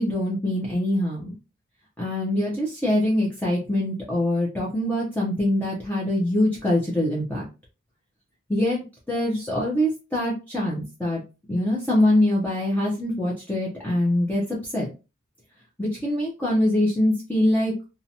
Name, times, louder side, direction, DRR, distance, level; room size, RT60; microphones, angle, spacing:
voice 1, 0.0-1.3 2.0-7.5 8.5-8.8 9.1-11.2 11.5-14.9 15.8-17.7, left 1 dB, 10° left, -5 dB, 0.5 m, -24 dB
2.7 x 2.1 x 2.6 m, 0.30 s
head